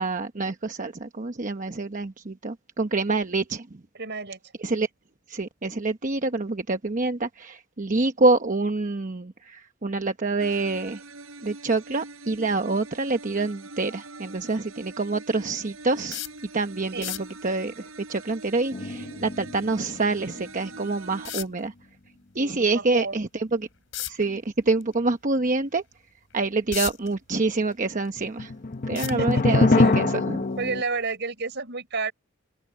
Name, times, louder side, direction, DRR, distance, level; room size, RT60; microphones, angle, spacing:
voice 1, 0.0-3.7 4.6-4.9 5.3-11.0 11.4-16.2 16.5-21.7 22.3-23.7 24.0-25.8 26.3-28.5 28.9-30.5, right 3 dB, 40° right, 1.0 m, -26 dB
voice 2, 4.0-4.4 16.9-17.1 22.4-23.1 28.9-30.0 30.6-32.1, right 4 dB, 60° right, 6.1 m, -31 dB
sound 1, 10.4-21.5, right 3 dB, 85° right, 6.1 m, -44 dB
sound 2, 16.1-16.4 16.9-17.4 20.1-20.2 21.2-21.7 23.9-24.2 24.8-24.9 25.4-25.5 26.3-27.1 27.6-28.3 29.0-29.6 30.6-30.8 31.1-31.2, left 13 dB, 65° left, 5.2 m, -33 dB
sound 3, 18.7-20.4 20.8-20.9 28.2-30.8, left 2 dB, 40° left, 0.9 m, -24 dB
open air
head